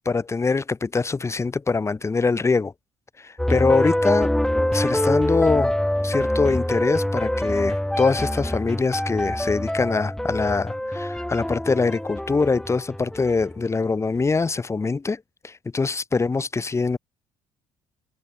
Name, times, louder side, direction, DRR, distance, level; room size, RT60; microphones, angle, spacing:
voice 1, 0.0-2.7 3.2-4.3 4.7-5.7 6.0-17.0, left 4 dB, 25° left, 3.0 m, -23 dB
sound 1, 3.4-13.6, left 1 dB, 5° left, 7.1 m, -25 dB
cardioid pair, 85°, 11 cm